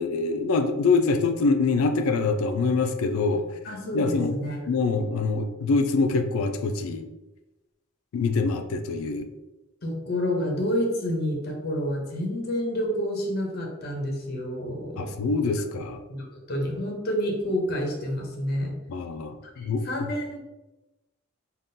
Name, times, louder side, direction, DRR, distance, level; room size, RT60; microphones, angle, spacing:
voice 1, 0.0-3.4 3.9-4.3 4.7-7.0 8.1-9.3 15.0-16.0 18.9-20.1, left 4 dB, 80° left, 8 dB, 0.3 m, -25 dB
voice 2, 3.6-4.6 9.8-15.0 16.1-18.7 19.6-20.4, equal, 50° left, 0 dB, 0.7 m, -29 dB
3.6 x 2.3 x 2.6 m, 1.0 s
head